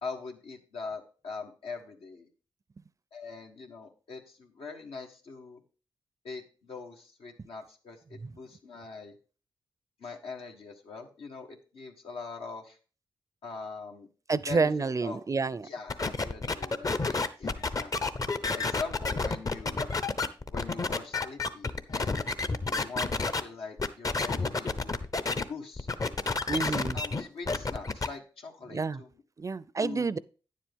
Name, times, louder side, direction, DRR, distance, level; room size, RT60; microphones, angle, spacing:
voice 1, 0.0-2.3 3.1-5.6 6.2-9.2 10.0-12.8 13.4-14.1 14.5-15.2 15.6-18.1 18.5-19.9 20.5-22.2 22.8-25.0 25.5-25.9 26.5-29.2 29.8-30.2, left 4 dB, 85° left, 1.3 m, -42 dB
voice 2, 14.3-15.7 26.5-26.9 28.7-29.0 29.4-30.2, right 4 dB, 35° right, 0.4 m, -29 dB
sound 1, 15.9-23.4 23.8-25.4 25.8-28.1, left 3 dB, 40° left, 0.7 m, -30 dB
9.5 x 7.4 x 3.5 m
cardioid pair, 55°, 9 cm